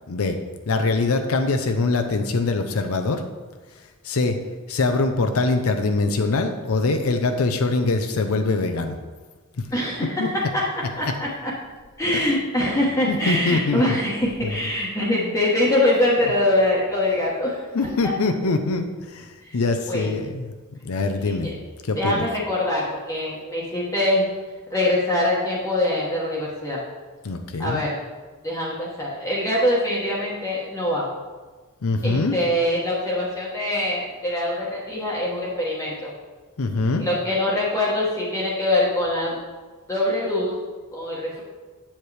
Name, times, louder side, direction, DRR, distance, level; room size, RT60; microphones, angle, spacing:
voice 1, 0.1-0.4 0.7-3.2 4.0-4.4 4.7-9.0 9.6-9.7 10.2-10.3 11.0-11.1 12.1-12.3 13.1-14.0 17.7-22.3 27.2-27.8 31.8-32.4 36.6-37.0, left 3 dB, 80° left, 6 dB, 0.6 m, -23 dB
voice 2, 9.7-10.2 10.5-10.6 11.0-11.5 12.0-17.6 18.0-18.1 19.4-19.6 19.9-20.1 21.4-21.5 22.0-24.2 24.7-26.8 27.6-28.0 28.4-31.1 32.0-36.1 37.0-39.4 39.9-40.5 40.9-41.4, left 1 dB, 15° left, -6 dB, 1.1 m, -23 dB
7.9 x 7.3 x 3.3 m, 1.3 s
head